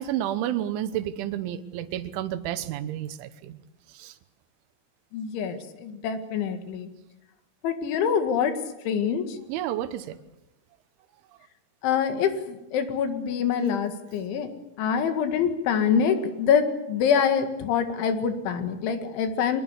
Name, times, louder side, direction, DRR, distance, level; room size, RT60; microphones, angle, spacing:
voice 1, 0.0-3.6 4.0-4.1 9.5-10.2, right 11 dB, 80° right, 12 dB, 3.5 m, -30 dB
voice 2, 5.1-6.9 7.6-8.5 8.9-9.4 11.8-14.5 14.8-19.6, left 7 dB, 75° left, 7 dB, 4.3 m, -25 dB
24.0 x 21.0 x 8.1 m, 0.96 s
omnidirectional pair, 5.5 m